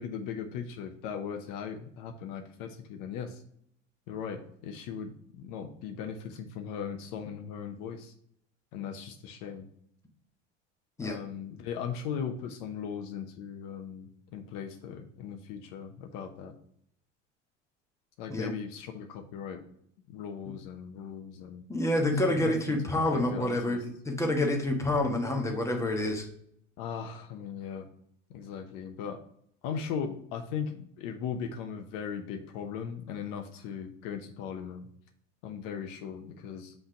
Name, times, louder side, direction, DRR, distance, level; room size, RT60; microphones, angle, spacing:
voice 1, 0.0-3.4 4.1-8.1 8.7-9.7 11.0-16.5 18.2-19.6 20.1-21.6 22.2-22.8 23.1-23.8 26.8-27.9 28.3-29.2 29.6-34.9 35.4-36.7, left 7 dB, 60° left, 7 dB, 0.8 m, -38 dB
voice 2, 21.7-26.3, left 1 dB, 10° left, 1 dB, 1.2 m, -28 dB
5.5 x 3.4 x 5.7 m, 0.69 s
hypercardioid pair, 90°, 37 cm